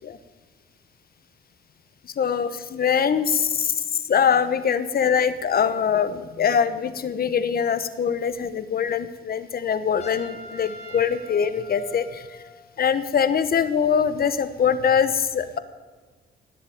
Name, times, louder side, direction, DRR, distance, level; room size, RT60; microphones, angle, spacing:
voice 1, 2.2-3.7 4.1-12.2 12.8-15.6, left 7 dB, 50° left, 13 dB, 1.1 m, -23 dB
Trumpet, 10.0-12.7, equal, 35° left, 3.8 m, -43 dB
18.5 x 8.0 x 8.6 m, 1.4 s
cardioid pair, 90°, 20 cm